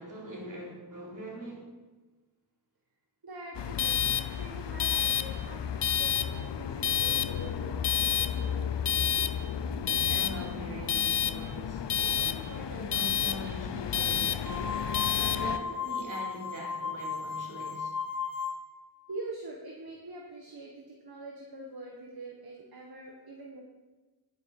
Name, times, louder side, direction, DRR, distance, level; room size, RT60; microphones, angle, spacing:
voice 1, 0.0-1.7 10.1-17.9, right 1 dB, 45° right, -4 dB, 4.0 m, -42 dB
voice 2, 3.2-7.8 8.1-8.8 19.1-23.6, right 2 dB, 65° right, -1 dB, 1.7 m, -44 dB
sound 1, 3.5-15.6, left 9 dB, 85° left, 0.6 m, -30 dB
sound 2, 14.4-18.8, left 5 dB, 60° left, 2.1 m, -35 dB
10.5 x 9.5 x 5.0 m, 1.2 s
wide cardioid pair, 55°, 41 cm